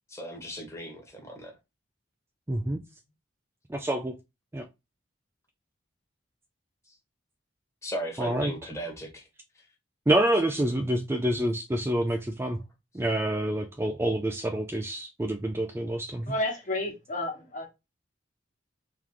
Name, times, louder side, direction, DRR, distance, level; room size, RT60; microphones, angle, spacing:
voice 1, 0.1-1.5 7.8-9.3, right 1 dB, 15° left, 1.3 m, -37 dB
voice 2, 2.5-2.8 3.7-4.1 4.5-4.6 8.2-8.5 10.1-12.6 12.9-16.3, right 1 dB, 15° right, 0.4 m, -27 dB
voice 3, 16.3-17.7, left 1 dB, 40° left, 1.4 m, -31 dB
3.8 x 3.3 x 2.9 m
head